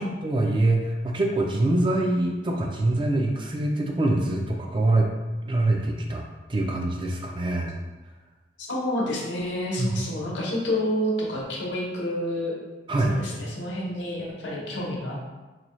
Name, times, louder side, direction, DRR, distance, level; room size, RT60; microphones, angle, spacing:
voice 1, 0.2-5.1 5.4-6.2 6.5-7.7 9.8-10.0 12.9-13.1, right 2 dB, 25° right, 1 dB, 0.4 m, -24 dB
voice 2, 8.6-12.6 13.0-15.3, left 1 dB, 90° left, -4 dB, 0.9 m, -29 dB
4.0 x 2.3 x 3.0 m, 1.2 s
head